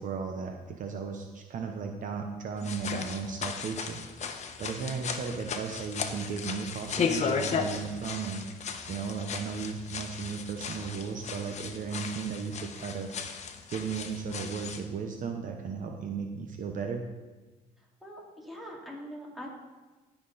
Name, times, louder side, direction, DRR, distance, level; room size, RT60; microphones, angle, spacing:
voice 1, 0.0-4.0 4.6-8.4 8.9-13.2 13.7-17.0, right 5 dB, 50° right, 4 dB, 0.9 m, -35 dB
sound 1, 2.6-14.8, left 5 dB, 45° left, 1.0 m, -35 dB
voice 2, 18.0-19.5, equal, ahead, -3 dB, 2.7 m, -43 dB
16.5 x 6.0 x 4.1 m, 1.2 s
cardioid pair, 110°, 17 cm